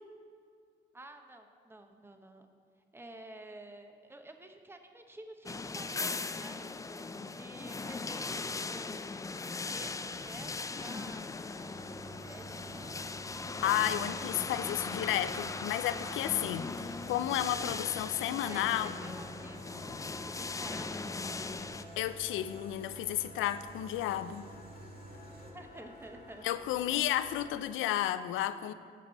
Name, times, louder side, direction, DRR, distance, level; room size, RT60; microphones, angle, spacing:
voice 1, 0.9-2.5 2.9-6.7 7.2-9.0 9.4-11.3 12.2-13.1 14.3-14.6 18.4-19.9 20.2-22.0 25.4-26.5, right 1 dB, 10° right, 5 dB, 0.8 m, -51 dB
sound 1, 5.5-21.8, left 3 dB, 15° left, 0.3 m, -39 dB
sound 2, 8.5-27.5, left 2 dB, 55° left, 2.0 m, -54 dB
sound 3, 11.6-25.5, right 2 dB, 50° right, 1.6 m, -51 dB
voice 2, 13.4-18.9 22.0-24.5 26.4-28.7, left 12 dB, 85° left, 13 dB, 0.4 m, -32 dB
16.0 x 5.3 x 3.9 m, 2.3 s
cardioid pair, 90°, 20 cm